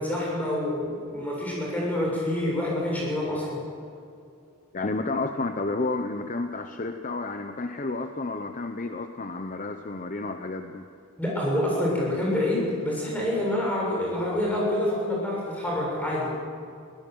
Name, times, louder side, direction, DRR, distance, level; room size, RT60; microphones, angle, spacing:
voice 1, 0.0-3.6 11.2-16.3, left 1 dB, 5° left, -4 dB, 6.9 m, -27 dB
voice 2, 4.7-10.9, left 3 dB, 35° left, 7 dB, 0.8 m, -31 dB
22.5 x 17.5 x 8.0 m, 2.4 s
head